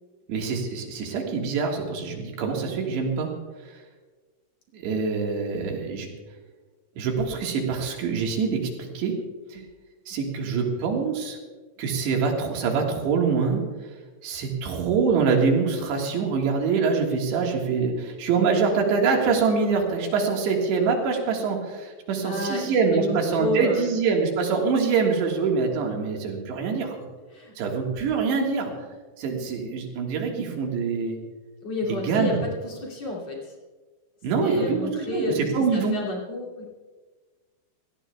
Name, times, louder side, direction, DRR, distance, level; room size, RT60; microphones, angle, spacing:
voice 1, 0.3-3.3 3.6-3.8 4.7-6.1 7.0-9.2 9.5-9.6 10.1-11.4 11.8-13.6 14.2-27.1 27.6-28.7 29.2-31.2 31.9-32.4 34.2-34.8 35.1-36.0, right 5 dB, 80° right, 1 dB, 3.8 m, -25 dB
voice 2, 22.2-23.9 27.3-27.5 31.6-33.5 34.3-35.3 35.7-36.7, left 2 dB, 40° left, -4 dB, 3.3 m, -30 dB
24.5 x 17.5 x 2.3 m, 1.3 s
omnidirectional pair, 5.0 m